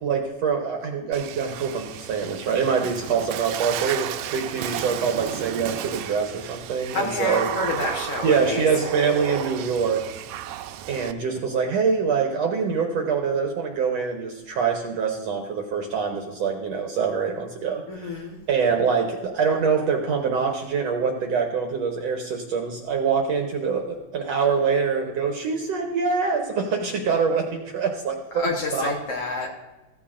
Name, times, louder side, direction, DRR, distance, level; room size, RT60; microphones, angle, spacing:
voice 1, 0.0-7.5 8.2-10.0 10.9-18.2 18.5-28.9, right 5 dB, 70° right, 3 dB, 1.7 m, -25 dB
Water / Splash splatter, 1.1-11.1, right 12 dB, 85° right, 2.2 m, -33 dB
voice 2, 6.9-8.6 17.9-18.4 28.3-29.5, left 3 dB, 60° left, -1 dB, 1.8 m, -28 dB
14.5 x 14.5 x 2.5 m, 1.1 s
omnidirectional pair, 3.8 m